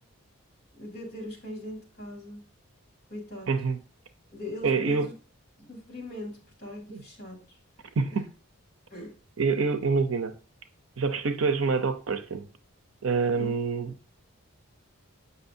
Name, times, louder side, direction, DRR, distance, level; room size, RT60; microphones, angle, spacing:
voice 1, 0.8-2.4 3.1-3.5 4.3-5.1 5.6-7.6 8.1-8.2 8.9-9.1 13.4-13.5, equal, 45° left, 3.2 m, -40 dB
voice 2, 3.5-3.8 4.6-5.1 6.9-7.0 8.0-8.3 9.4-10.3 11.0-12.5 13.0-13.9, right 4 dB, 65° right, 0.6 m, -26 dB
7.9 x 5.6 x 2.6 m
head